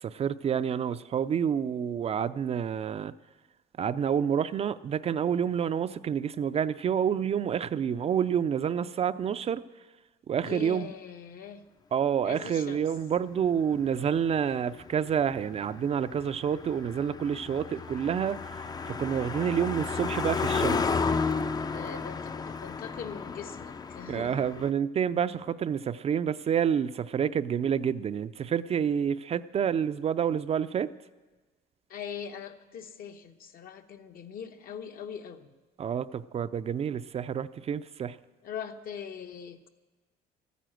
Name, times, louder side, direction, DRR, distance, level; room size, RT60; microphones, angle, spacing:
voice 1, 0.0-3.1 3.8-9.6 10.3-10.9 11.9-20.9 24.1-30.9 35.8-38.2, right 8 dB, 40° right, 13 dB, 0.4 m, -28 dB
voice 2, 10.4-11.6 12.2-12.8 21.7-24.4 31.9-35.5 38.4-39.7, left 7 dB, 60° left, 6 dB, 1.0 m, -41 dB
Car passing by, 13.5-24.7, left 4 dB, 25° left, 0.4 m, -33 dB
14.0 x 9.3 x 7.7 m, 1.3 s
cardioid pair, 110°, 17 cm